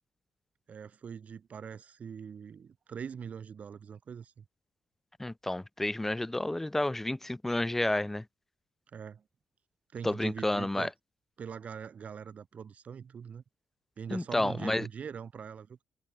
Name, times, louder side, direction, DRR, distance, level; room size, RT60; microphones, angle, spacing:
voice 1, 0.7-4.4 8.9-9.2 9.9-10.9 11.4-13.4 14.0-15.8, right 7 dB, 35° right, 2.0 m, -42 dB
voice 2, 5.2-8.2 10.0-10.9 14.1-14.9, left 1 dB, 5° left, 0.9 m, -30 dB
cardioid pair, 160°, 4 cm